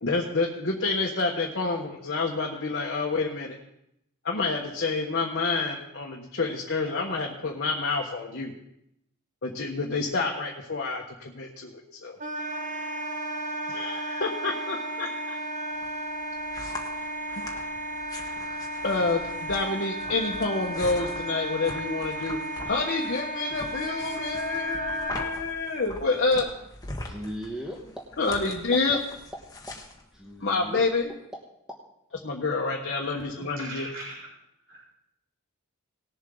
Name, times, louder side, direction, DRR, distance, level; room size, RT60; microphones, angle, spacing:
voice 1, 0.0-3.6 4.2-8.5 9.4-12.2 13.7-15.4 18.8-22.4 22.6-26.5 28.2-29.0 30.4-31.1 32.2-33.9, left 3 dB, 50° left, -2 dB, 1.3 m, -28 dB
Wind instrument woodwind instrument, 12.2-25.3, right 1 dB, 35° right, 1.0 m, -34 dB
sound 1, 15.7-31.0, left 2 dB, 15° left, 1.5 m, -42 dB
voice 2, 27.0-28.0 29.7-29.8 30.1-30.9 31.3-31.4 31.7-31.8, equal, 5° right, -2 dB, 1.2 m, -38 dB
voice 3, 32.9-34.3 34.7-34.8, right 2 dB, 60° right, -7 dB, 4.7 m, -41 dB
19.0 x 7.4 x 3.8 m, 0.77 s
head